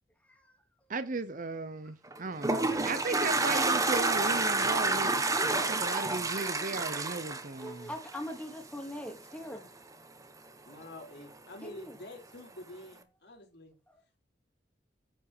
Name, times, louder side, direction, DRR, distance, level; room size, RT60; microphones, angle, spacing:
voice 1, 0.3-0.6 2.7-2.8 5.3-5.8 7.6-9.7 11.6-12.0 13.9-14.0, equal, 10° left, 2.5 m, -42 dB
voice 2, 0.9-5.2 5.5-7.9, right 3 dB, 45° right, 0.8 m, -36 dB
Toilet flush, 2.1-8.4, right 3 dB, 20° right, 1.1 m, -29 dB
voice 3, 10.6-13.7, left 1 dB, 65° left, 3.5 m, -48 dB
10.0 x 5.4 x 6.7 m
head